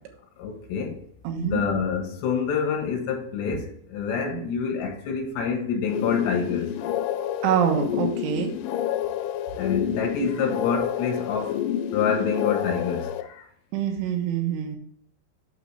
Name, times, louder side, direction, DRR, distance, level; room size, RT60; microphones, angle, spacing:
voice 1, 0.4-1.0 1.4-6.8 9.6-11.6 11.9-13.5, left 6 dB, 65° left, 3.5 m, -27 dB
voice 2, 1.2-1.6 4.3-4.4 7.4-8.5 13.7-14.8, right 9 dB, 75° right, 3.6 m, -25 dB
sound 1, 5.9-13.2, left 10 dB, 85° left, 3.1 m, -29 dB
8.9 x 6.3 x 3.4 m
omnidirectional pair, 5.9 m